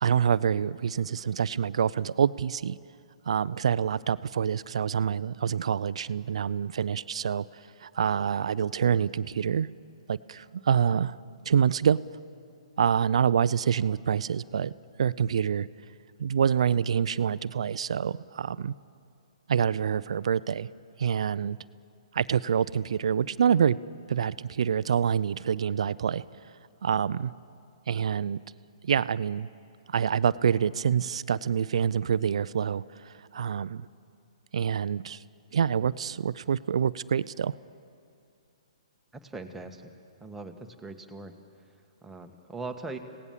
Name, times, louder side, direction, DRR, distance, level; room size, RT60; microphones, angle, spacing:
voice 1, 0.0-2.8 3.3-9.7 10.1-11.2 11.4-12.0 12.8-14.7 15.0-15.7 16.2-18.7 19.5-20.7 21.0-21.6 22.1-23.8 24.1-26.2 26.8-27.3 27.9-28.4 28.8-29.5 29.9-33.9 34.5-35.2 35.5-37.5, right 7 dB, 70° right, 18 dB, 0.5 m, -26 dB
voice 2, 39.2-39.9 40.2-40.5 40.8-41.3 42.0-43.0, right 3 dB, 5° right, 3 dB, 1.4 m, -40 dB
26.0 x 17.5 x 7.3 m, 2.5 s
hypercardioid pair, 140°, 3 cm